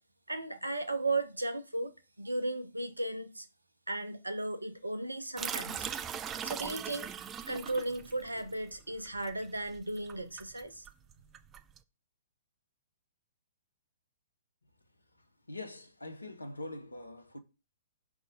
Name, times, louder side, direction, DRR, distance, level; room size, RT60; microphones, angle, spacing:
voice 1, 0.3-3.5 3.9-5.9 6.4-7.1 7.5-10.8, right 2 dB, 80° right, 0.8 m, -35 dB
sound 1, 5.4-11.8, right 8 dB, 20° right, 0.4 m, -40 dB
voice 2, 15.5-17.4, left 2 dB, 80° left, 1.0 m, -43 dB
5.3 x 3.5 x 5.1 m
figure-of-eight pair, 115°, 0 cm